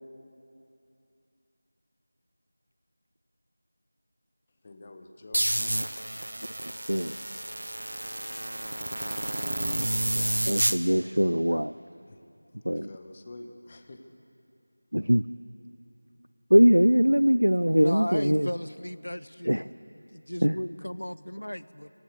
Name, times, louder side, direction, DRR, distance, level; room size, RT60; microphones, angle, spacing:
voice 1, 4.6-5.5 11.5-11.6 12.1-12.2 12.7-14.0, left 2 dB, 25° left, 6 dB, 1.2 m, -47 dB
sound 1, 5.3-10.8, right 1 dB, 65° right, 1.0 m, -30 dB
voice 2, 10.2-11.7 12.6-12.9 14.9-15.2 16.5-18.5 19.4-19.6 20.4-20.6, equal, 85° right, 15 dB, 0.4 m, -22 dB
voice 3, 17.7-19.7 20.1-21.9, equal, 80° left, 17 dB, 0.7 m, -35 dB
19.0 x 16.0 x 9.6 m, 2.7 s
figure-of-eight pair, 170°, 0 cm